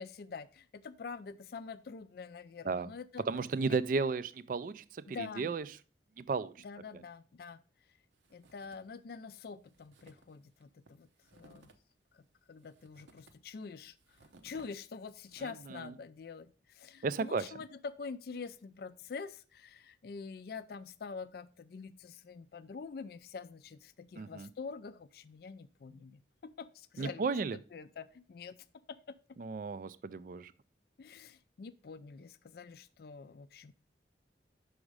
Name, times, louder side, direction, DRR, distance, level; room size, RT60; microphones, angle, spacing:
voice 1, 0.0-3.2 3.6-3.8 5.1-5.5 6.6-7.6 8.3-11.1 11.3-11.7 12.1-27.2 27.7-29.4 31.0-33.7, left 5 dB, 55° left, 12 dB, 0.4 m, -46 dB
voice 2, 3.2-5.7 6.2-6.6 15.4-15.9 17.0-17.5 24.2-24.5 27.0-27.6 29.4-30.5, right 4 dB, 45° right, 17 dB, 0.3 m, -34 dB
sound 1, 8.1-9.0 9.3-9.4 9.7-15.7, right 2 dB, 80° right, 0.9 m, -63 dB
6.3 x 4.9 x 4.7 m, 0.36 s
head